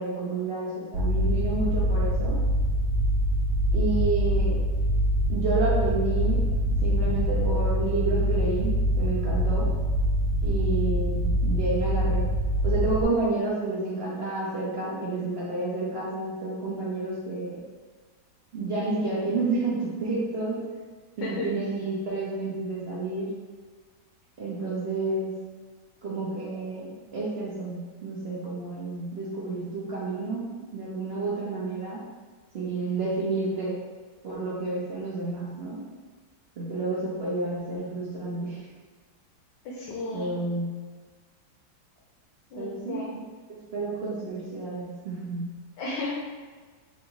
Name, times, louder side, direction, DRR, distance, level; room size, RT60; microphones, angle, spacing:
voice 1, 0.0-2.4 3.7-4.6 5.3-6.4 6.8-9.7 10.4-12.3 12.6-17.6 18.5-20.6 21.2-23.3 24.4-25.3 26.0-32.0 32.5-33.8 34.2-35.8 36.6-38.7 40.1-40.8 42.6-43.0 43.5-45.6, right 3 dB, 60° right, -6 dB, 0.6 m, -30 dB
sound 1, 0.9-13.0, equal, 90° right, 1.3 m, -24 dB
voice 2, 39.6-40.3 42.5-43.2 45.8-46.1, left 2 dB, 85° left, -4 dB, 1.3 m, -34 dB
4.1 x 2.7 x 2.9 m, 1.5 s
omnidirectional pair, 1.8 m